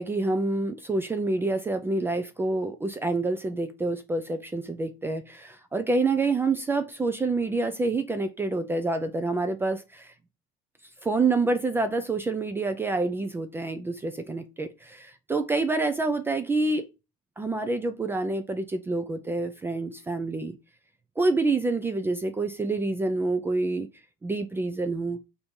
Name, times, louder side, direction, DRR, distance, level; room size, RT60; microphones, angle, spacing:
voice 1, 0.0-10.1 11.0-16.9 17.4-20.6 21.2-23.9 24.2-25.2, right 3 dB, 15° right, 0.4 m, -27 dB
4.4 x 2.7 x 3.6 m
supercardioid pair, 125°, 18 cm